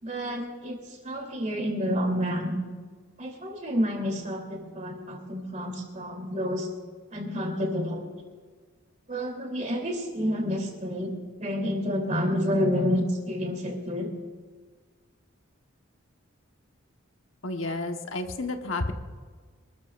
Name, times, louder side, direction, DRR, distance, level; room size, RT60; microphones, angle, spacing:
voice 1, 0.0-2.6 3.2-6.7 7.1-8.1 9.1-11.1 11.4-14.1, equal, 35° right, 1 dB, 3.2 m, -29 dB
voice 2, 17.4-18.9, left 2 dB, 70° left, 5 dB, 1.2 m, -31 dB
25.5 x 13.5 x 2.5 m, 1.5 s
head